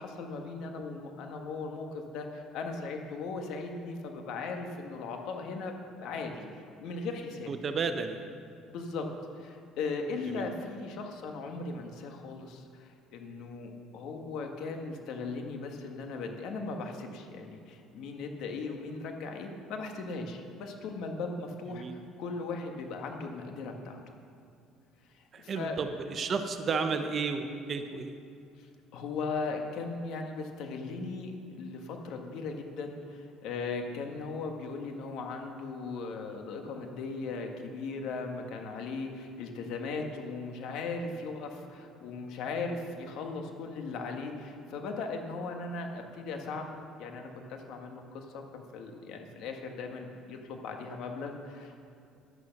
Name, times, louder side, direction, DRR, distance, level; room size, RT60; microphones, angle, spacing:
voice 1, 0.0-5.7 6.0-6.4 6.8-7.5 8.7-9.1 9.4-24.0 25.1-25.8 28.9-51.7, left 4 dB, 70° left, 3 dB, 1.6 m, -38 dB
voice 2, 7.5-8.3 10.3-10.5 21.7-22.0 25.3-28.1, right 5 dB, 40° right, 8 dB, 0.9 m, -32 dB
11.0 x 9.1 x 6.0 m, 2.5 s
cardioid pair, 105°, 0 cm